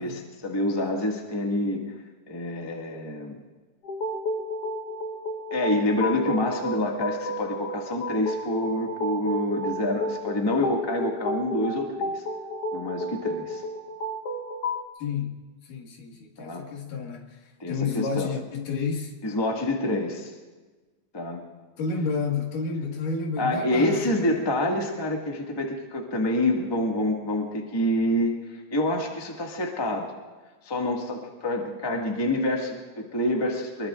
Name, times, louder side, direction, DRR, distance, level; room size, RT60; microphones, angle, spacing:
voice 1, 0.0-1.8 2.3-3.4 5.5-12.2 12.7-13.6 16.4-16.6 17.6-18.3 19.2-20.3 21.1-21.4 23.4-28.3 28.7-30.1 30.6-33.9, left 1 dB, 15° left, 0 dB, 0.8 m, -27 dB
sound 1, 3.8-14.9, equal, 60° left, 1.7 m, -32 dB
voice 2, 15.0-15.4 15.6-19.1 21.8-24.3, left 5 dB, 75° left, 1 dB, 3.5 m, -31 dB
24.0 x 22.0 x 2.5 m, 1.3 s
omnidirectional pair, 3.9 m